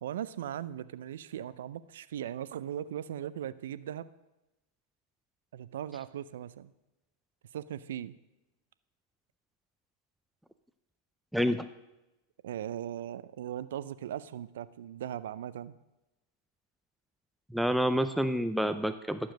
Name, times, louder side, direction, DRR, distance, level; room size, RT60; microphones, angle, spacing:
voice 1, 0.0-4.1 5.5-6.7 7.5-8.1 12.4-15.7, right 10 dB, 70° right, 16 dB, 0.5 m, -38 dB
voice 2, 11.3-11.7 17.5-19.3, equal, ahead, 10 dB, 0.5 m, -28 dB
12.0 x 7.0 x 6.4 m, 0.98 s
hypercardioid pair, 100°, 0 cm